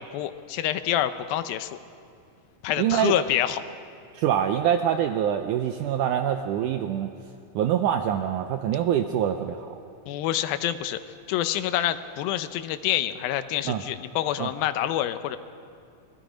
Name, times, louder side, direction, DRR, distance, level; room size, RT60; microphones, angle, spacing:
voice 1, 0.0-1.8 2.6-3.7 10.1-11.0 11.3-15.4, left 12 dB, 80° left, 11 dB, 2.4 m, -27 dB
voice 2, 2.8-3.1 4.1-7.1 7.5-9.7 13.7-13.8 14.4-14.5, right 10 dB, 85° right, 6 dB, 1.8 m, -25 dB
27.5 x 21.0 x 5.1 m, 2.4 s
omnidirectional pair, 4.4 m